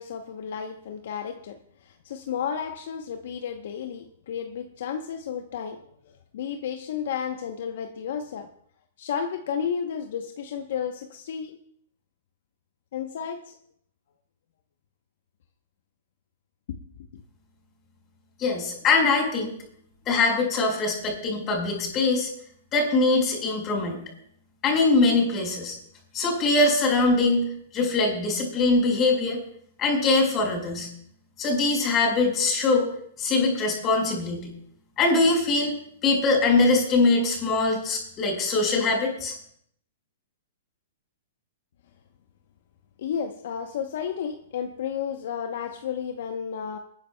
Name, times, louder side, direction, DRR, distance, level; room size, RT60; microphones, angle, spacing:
voice 1, 0.0-5.8 6.3-8.5 9.0-11.6 12.9-13.6 16.7-16.8 17.1-17.2 43.0-46.8, left 7 dB, 65° left, 6 dB, 0.8 m, -32 dB
voice 2, 18.4-19.5 20.0-22.3 22.7-24.0 24.6-25.8 26.1-27.4 27.7-29.4 29.8-30.9 31.4-32.9 33.2-34.5 35.0-35.7 36.0-39.3, left 3 dB, 25° left, 0 dB, 4.5 m, -22 dB
28.5 x 9.8 x 2.2 m, 0.66 s
hypercardioid pair, 135°, 0 cm